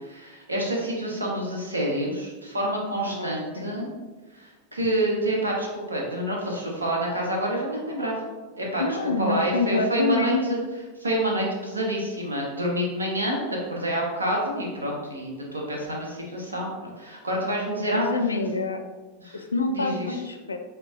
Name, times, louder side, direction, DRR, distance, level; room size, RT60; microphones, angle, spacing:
voice 1, 0.0-4.0 4.4-8.2 8.6-10.6 11.0-16.7 17.0-18.1 19.2-19.4 19.7-20.2, right 1 dB, 75° right, -2 dB, 0.8 m, -28 dB
voice 2, 3.1-3.8 8.8-10.4 17.9-18.8 19.3-20.6, left 3 dB, 75° left, 6 dB, 0.3 m, -27 dB
5.0 x 2.8 x 2.4 m, 1.3 s
figure-of-eight pair, 90°, 0 cm